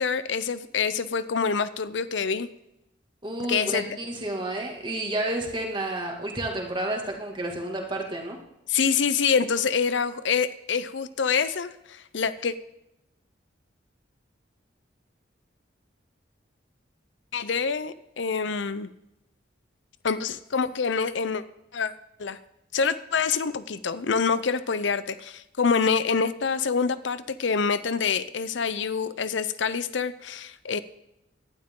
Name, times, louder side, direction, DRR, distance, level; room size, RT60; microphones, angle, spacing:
voice 1, 0.0-2.5 3.5-4.0 8.7-12.5 17.3-18.9 20.0-21.4 21.7-21.9 22.2-22.4 22.7-30.8, left 5 dB, 75° left, 14 dB, 0.6 m, -26 dB
voice 2, 3.2-8.4, right 1 dB, 25° right, 1 dB, 2.3 m, -30 dB
17.5 x 12.0 x 3.8 m, 0.87 s
head